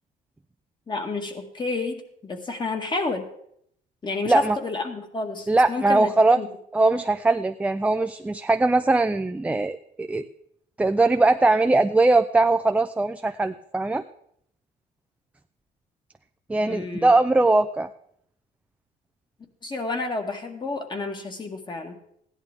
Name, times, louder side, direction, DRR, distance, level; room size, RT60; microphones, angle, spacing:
voice 1, 0.9-3.3 4.0-6.5 16.6-17.1 19.6-22.0, left 3 dB, 25° left, 5 dB, 1.8 m, -30 dB
voice 2, 4.2-4.6 5.5-6.4 6.7-10.2 10.8-14.0 16.5-17.9, right 2 dB, 10° right, 8 dB, 0.4 m, -21 dB
15.5 x 11.0 x 3.6 m, 0.70 s
cardioid pair, 110°, 17 cm